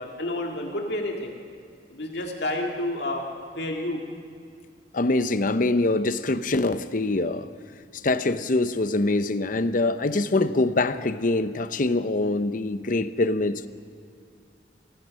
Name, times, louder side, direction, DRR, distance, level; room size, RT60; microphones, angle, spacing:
voice 1, 0.0-1.3 1.9-3.2 3.6-4.0, left 1 dB, 70° left, 2.0 m, -29 dB
voice 2, 4.9-7.5 8.0-13.7, left 2 dB, 50° left, 0.7 m, -24 dB
27.5 x 15.5 x 6.4 m
head